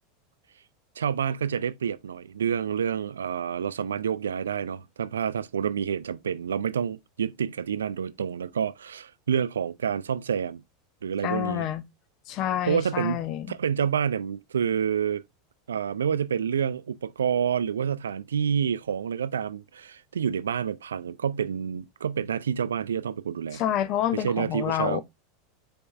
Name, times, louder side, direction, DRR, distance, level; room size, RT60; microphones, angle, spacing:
voice 1, 1.0-10.6 11.0-11.7 12.7-13.2 13.5-15.2 15.7-23.6 24.1-25.0, right 8 dB, 80° right, 0.3 m, -28 dB
voice 2, 11.2-11.8 12.3-13.5 23.5-25.0, left 11 dB, 45° left, 0.6 m, -28 dB
5.2 x 4.2 x 2.3 m
hypercardioid pair, 85°, 0 cm